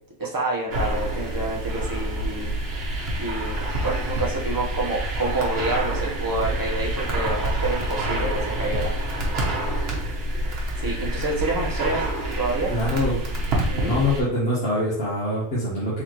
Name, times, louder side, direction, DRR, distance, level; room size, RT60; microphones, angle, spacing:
voice 1, 0.2-2.5 3.2-3.6 3.8-8.9 10.8-12.1 12.4-13.2 13.7-13.9, right 2 dB, 15° right, -4 dB, 0.9 m, -28 dB
sound 1, 0.7-14.2, right 1 dB, 50° right, 1.2 m, -27 dB
voice 2, 12.7-13.5 13.8-16.0, left 1 dB, 50° left, -8 dB, 1.3 m, -25 dB
4.1 x 3.9 x 3.0 m, 0.69 s
omnidirectional pair, 1.4 m